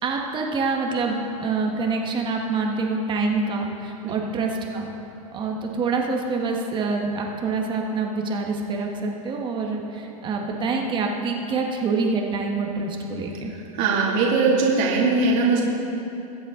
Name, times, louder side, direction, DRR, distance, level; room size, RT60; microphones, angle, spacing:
voice 1, 0.0-4.9 5.3-13.5, right 4 dB, 25° right, 1 dB, 1.4 m, -26 dB
voice 2, 13.8-15.6, right 4 dB, 50° right, -4 dB, 2.5 m, -20 dB
22.0 x 7.9 x 3.8 m, 2.9 s
hypercardioid pair, 130°, 19 cm